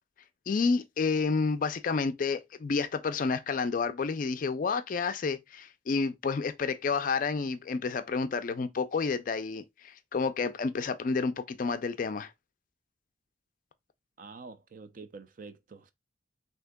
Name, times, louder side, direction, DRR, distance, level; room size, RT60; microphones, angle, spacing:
voice 1, 0.5-12.3, left 4 dB, 45° left, 0.4 m, -30 dB
voice 2, 14.2-15.9, right 4 dB, 45° right, 0.5 m, -47 dB
6.1 x 2.8 x 2.2 m
head